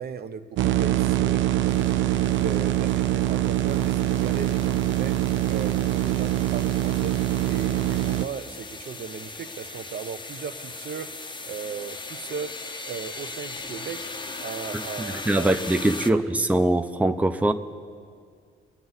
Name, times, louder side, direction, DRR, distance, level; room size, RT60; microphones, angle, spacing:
voice 1, 0.0-7.1 7.5-12.5 12.8-14.0 14.4-15.7 16.1-16.2, right 6 dB, 50° right, 9 dB, 0.8 m, -37 dB
sound 1, 0.6-16.1, left 3 dB, 25° left, 0.8 m, -39 dB
sound 2, 0.6-8.3, right 13 dB, 75° right, 0.4 m, -24 dB
voice 2, 15.0-17.5, right 1 dB, 5° right, 7 dB, 0.7 m, -22 dB
24.5 x 9.3 x 4.1 m, 2.1 s
cardioid pair, 90°, 20 cm